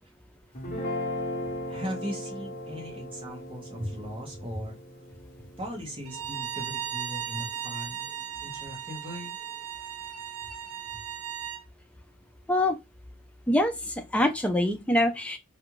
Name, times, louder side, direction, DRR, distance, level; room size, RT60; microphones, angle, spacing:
Guitar, 0.5-6.9, left 1 dB, 35° left, 1.0 m, -37 dB
voice 1, 1.7-4.7 5.6-8.0 8.4-9.4 10.9-11.0, equal, 25° right, 0.9 m, -38 dB
Bowed string instrument, 6.1-11.6, right 9 dB, 85° right, 0.5 m, -36 dB
voice 2, 13.5-15.4, left 1 dB, 5° left, 0.3 m, -25 dB
2.5 x 2.4 x 2.9 m
head